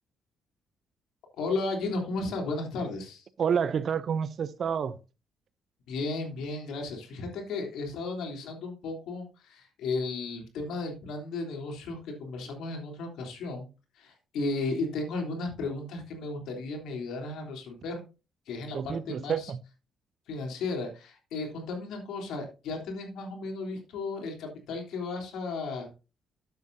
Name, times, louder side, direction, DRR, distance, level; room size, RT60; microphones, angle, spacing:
voice 1, 1.4-3.2 5.9-13.7 13.9-18.0 18.5-19.5 20.3-25.9, left 3 dB, 85° left, 3.4 m, -34 dB
voice 2, 3.4-5.0 18.7-19.6, right 7 dB, 55° right, 0.6 m, -29 dB
12.0 x 8.0 x 2.7 m
cardioid pair, 90°, 0 cm